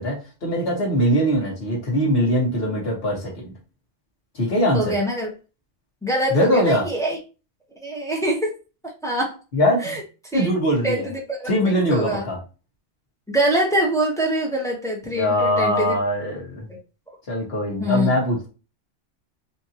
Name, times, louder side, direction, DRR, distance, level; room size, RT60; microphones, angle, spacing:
voice 1, 0.0-3.5 4.3-4.9 6.3-6.8 9.5-10.0 10.3-11.1 11.5-12.4 15.1-16.7 17.3-18.5, equal, 55° left, -4 dB, 1.9 m, -22 dB
voice 2, 4.7-5.3 6.0-7.2 7.8-8.5 9.0-9.4 9.8-10.0 10.3-10.5 10.8-11.5 11.9-12.2 13.3-16.0 17.8-18.1, right 1 dB, 5° left, -1 dB, 0.9 m, -24 dB
4.7 x 2.6 x 2.9 m, 0.32 s
omnidirectional pair, 1.3 m